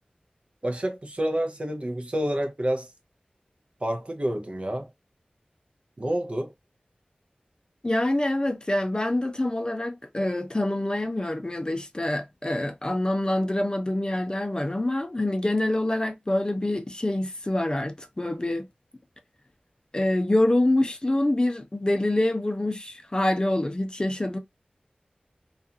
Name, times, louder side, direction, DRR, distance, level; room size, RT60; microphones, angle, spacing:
voice 1, 0.6-2.9 3.8-4.9 6.0-6.5, right 1 dB, 45° right, 0.6 m, -28 dB
voice 2, 7.8-18.7 19.9-24.4, left 1 dB, 30° left, 0.6 m, -26 dB
2.4 x 2.4 x 2.7 m
wide cardioid pair, 50°, 3 cm